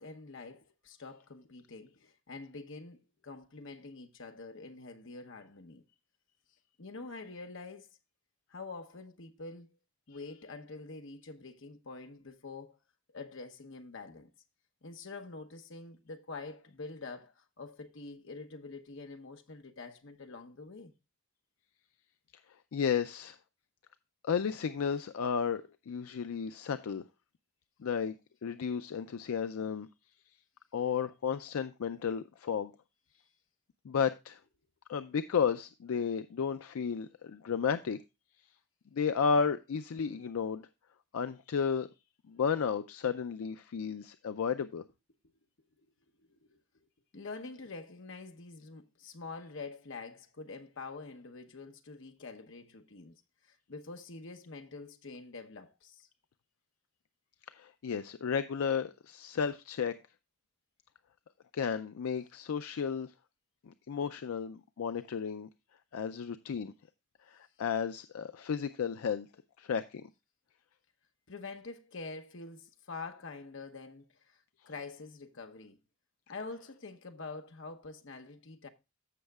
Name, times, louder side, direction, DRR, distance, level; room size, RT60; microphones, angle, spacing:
voice 1, 0.0-5.8 6.8-7.9 8.5-9.8 10.1-12.8 13.1-14.3 14.8-20.9 45.8-45.9 46.2-46.8 47.1-56.1 71.3-75.8 76.3-78.7, left 3 dB, 55° left, 0.9 m, -46 dB
voice 2, 22.7-23.4 24.2-27.0 27.8-28.2 28.4-29.9 30.7-32.7 33.8-34.4 34.9-38.0 38.9-40.7 41.1-41.9 42.3-44.8 57.5-59.9 61.5-63.1 63.6-65.5 65.9-66.7 67.3-69.3 69.6-70.1, left 6 dB, 70° left, 0.4 m, -33 dB
14.5 x 6.3 x 2.3 m
head